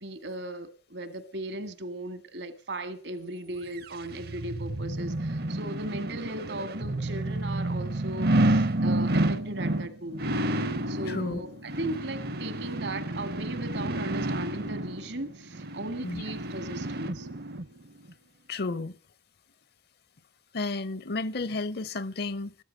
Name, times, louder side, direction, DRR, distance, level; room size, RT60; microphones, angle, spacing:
voice 1, 0.0-10.6 10.9-17.3, right 1 dB, 75° right, 1.9 m, -37 dB
sound 1, 3.8-17.7 18.1-18.2, right 1 dB, 60° right, 0.8 m, -30 dB
voice 2, 11.1-11.4 16.0-16.2 18.5-19.0 20.5-22.5, left 3 dB, 65° left, 0.7 m, -32 dB
14.0 x 12.5 x 6.4 m
head